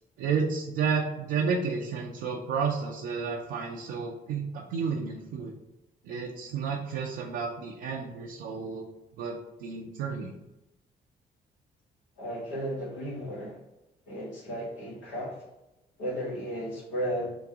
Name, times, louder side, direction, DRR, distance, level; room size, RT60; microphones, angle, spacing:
voice 1, 0.2-5.5 6.0-8.9 9.2-10.3, right 5 dB, 85° right, -2 dB, 0.6 m, -31 dB
voice 2, 12.2-13.6 14.1-15.4 16.0-17.4, equal, 90° left, -4 dB, 1.4 m, -34 dB
3.9 x 2.5 x 4.7 m, 0.92 s
supercardioid pair, 55°, 19 cm